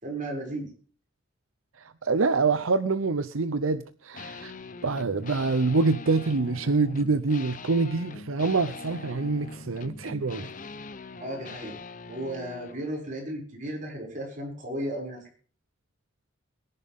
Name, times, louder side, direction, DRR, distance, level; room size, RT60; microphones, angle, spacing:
voice 1, 0.0-0.7 11.2-11.8 12.1-15.2, right 1 dB, 40° right, 6.5 m, -34 dB
voice 2, 1.8-4.5 4.8-10.5, right 3 dB, 85° right, 0.8 m, -26 dB
sound 1, 4.1-12.8, left 3 dB, 40° left, 0.8 m, -42 dB
22.0 x 10.5 x 3.7 m
head